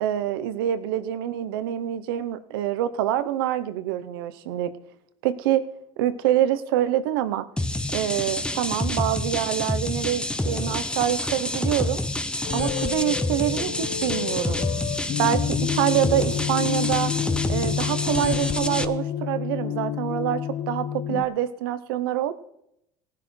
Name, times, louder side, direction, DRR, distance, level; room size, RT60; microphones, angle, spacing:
voice 1, 0.0-4.7 5.2-5.6 6.0-7.5 7.9-12.0 12.5-14.6 15.2-17.1 17.5-22.3, right 12 dB, 85° right, 12 dB, 0.7 m, -26 dB
sound 1, 7.6-18.9, left 1 dB, 10° left, 0.8 m, -28 dB
sound 2, 12.4-21.2, left 10 dB, 60° left, 0.6 m, -29 dB
18.5 x 10.5 x 3.2 m, 0.80 s
supercardioid pair, 80°, 12 cm